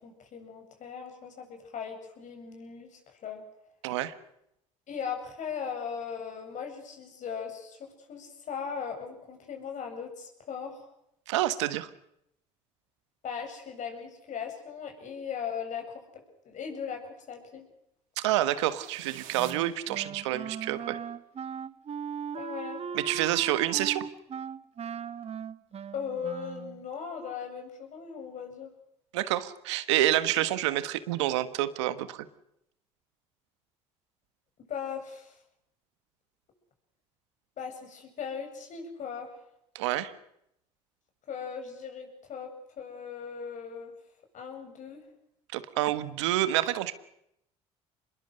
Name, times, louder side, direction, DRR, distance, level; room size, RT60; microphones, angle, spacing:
voice 1, 0.0-3.4 4.9-10.9 13.2-17.7 22.3-22.8 25.9-28.7 34.7-35.4 37.6-39.3 41.3-42.5 42.8-43.9 44.3-45.0, left 7 dB, 60° left, 4 dB, 7.9 m, -38 dB
voice 2, 3.8-4.1 11.3-11.9 18.2-21.0 22.9-24.0 29.1-32.2 39.7-40.1 45.5-46.9, right 14 dB, 90° right, 13 dB, 1.4 m, -28 dB
sound 1, 18.4-20.6, right 11 dB, 70° right, 2.9 m, -50 dB
Wind instrument woodwind instrument, 19.4-26.8, right 7 dB, 45° right, 1.2 m, -38 dB
26.0 x 21.0 x 6.6 m, 0.78 s
hypercardioid pair, 65°, 15 cm